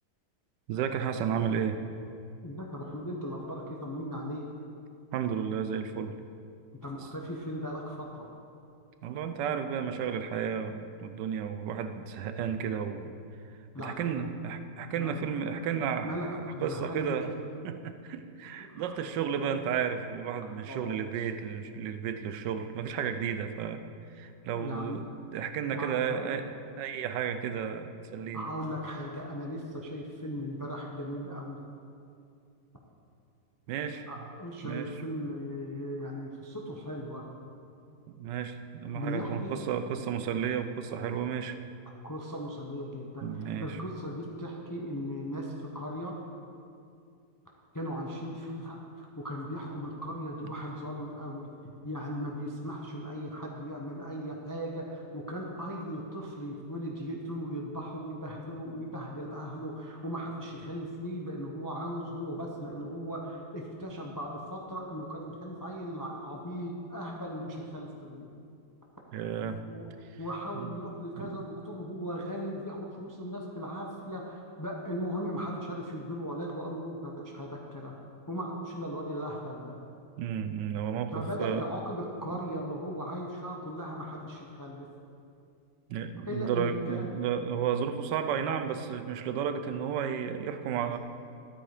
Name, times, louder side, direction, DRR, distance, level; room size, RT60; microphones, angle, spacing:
voice 1, 0.7-1.8 5.1-6.1 9.0-13.1 13.8-17.3 17.6-23.8 24.1-28.4 33.7-34.0 34.6-34.9 38.1-41.6 43.2-43.8 69.1-69.6 70.5-70.7 71.2-71.4 80.2-81.7 82.3-82.4 85.9-91.0, right 7 dB, 80° right, 9 dB, 1.3 m, -33 dB
voice 2, 2.4-4.5 6.8-8.3 13.7-14.4 15.0-15.5 16.0-17.2 18.6-18.9 20.7-21.1 24.5-25.0 25.7-26.4 28.3-31.6 34.1-37.3 38.9-39.6 41.9-43.3 43.6-46.2 47.7-68.3 69.7-69.9 70.2-77.9 78.3-79.8 81.1-84.9 86.3-87.0 90.8-91.0, equal, 20° left, -1 dB, 0.6 m, -37 dB
12.0 x 8.6 x 4.9 m, 2.5 s
omnidirectional pair, 1.9 m